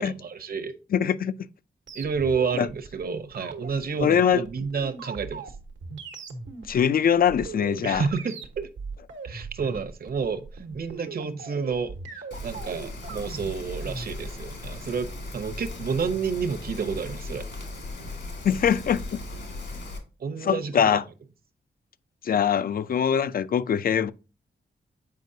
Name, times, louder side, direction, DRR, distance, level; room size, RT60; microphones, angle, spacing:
voice 1, 0.0-0.7 1.9-5.5 7.8-8.7 9.2-17.4 20.2-21.0, right 5 dB, 50° right, 0.8 m, -30 dB
voice 2, 0.9-1.4 2.6-2.7 4.0-4.4 6.7-8.0 18.4-19.2 20.4-21.0 22.2-24.1, left 8 dB, 50° left, 0.4 m, -22 dB
sound 1, 1.9-14.1, right 4 dB, 85° right, 1.1 m, -39 dB
Rain, 12.3-20.0, left 2 dB, 70° left, 2.0 m, -37 dB
7.6 x 5.1 x 2.7 m
wide cardioid pair, 120°, 19 cm